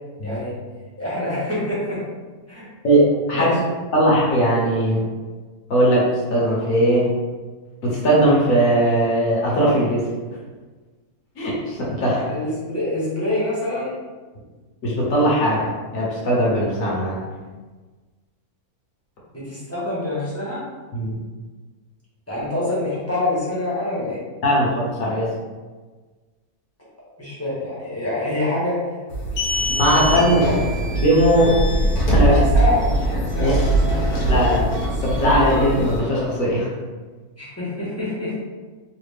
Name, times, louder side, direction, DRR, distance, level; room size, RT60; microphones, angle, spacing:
voice 1, 0.2-0.5 1.0-2.0 2.5-2.6 3.3-3.5 12.3-13.9 19.3-20.6 22.3-24.2 27.2-28.8 29.6-30.5 32.3-32.9 33.4-33.6 33.9-34.0 37.4-38.4, left 1 dB, 10° left, -9 dB, 0.9 m, -26 dB
voice 2, 2.8-3.6 3.9-5.0 5.7-7.1 7.8-10.0 11.4-12.2 14.8-17.2 20.9-21.2 24.4-25.3 29.8-30.4 31.0-31.5 32.0-32.4 33.4-33.5 34.2-34.7 35.0-36.7, right 1 dB, 65° left, -5 dB, 1.3 m, -19 dB
sound 1, 29.1-36.0, right 1 dB, 85° left, 1.4 m, -21 dB
3.2 x 2.4 x 3.3 m, 1.4 s
omnidirectional pair, 1.6 m